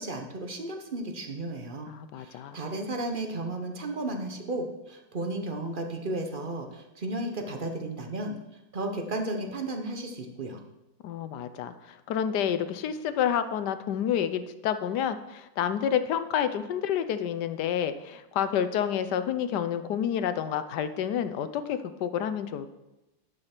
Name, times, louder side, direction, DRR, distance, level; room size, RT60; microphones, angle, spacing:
voice 1, 0.0-1.9 2.2-8.4 8.7-10.6, right 2 dB, 35° right, 4 dB, 0.9 m, -34 dB
voice 2, 1.9-2.6 11.0-22.7, left 9 dB, 70° left, 11 dB, 1.2 m, -29 dB
11.0 x 5.7 x 6.0 m, 0.97 s
omnidirectional pair, 2.1 m